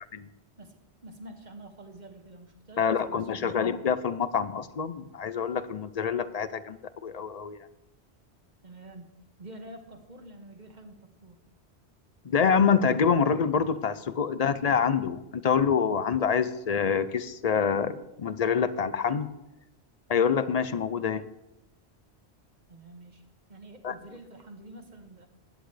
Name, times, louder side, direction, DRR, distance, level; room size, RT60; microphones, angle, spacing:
voice 1, 0.6-3.6 8.6-9.1 9.4-11.4 22.7-23.2 23.5-25.3, right 1 dB, 45° right, 5 dB, 1.5 m, -47 dB
voice 2, 2.8-7.6 12.2-19.3 20.1-21.2 23.8-23.9, left 6 dB, 50° left, 14 dB, 0.5 m, -26 dB
16.0 x 10.0 x 3.3 m, 0.93 s
omnidirectional pair, 1.1 m